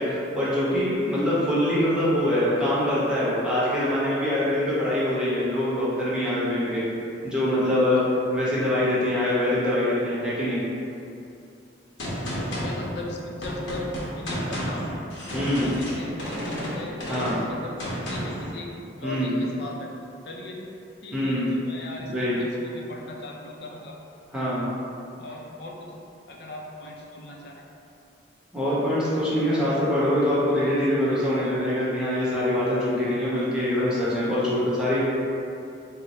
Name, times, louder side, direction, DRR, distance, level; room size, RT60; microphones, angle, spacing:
voice 1, 0.0-6.8 7.2-8.0 8.3-10.6 15.3-15.7 17.1-17.4 19.0-19.4 21.1-21.4 22.0-22.4 24.3-24.7 28.5-35.0, left 1 dB, 5° right, -10 dB, 1.0 m, -24 dB
Gunshot gunfire, 12.0-18.5, equal, 85° left, 0.9 m, -32 dB
voice 2, 12.4-13.9 14.2-15.0 15.4-18.7 19.0-19.9 20.2-20.6 21.0-24.0 25.2-25.9 26.3-27.6, left 2 dB, 65° left, -1 dB, 0.5 m, -38 dB
4.0 x 2.1 x 4.2 m, 2.6 s
head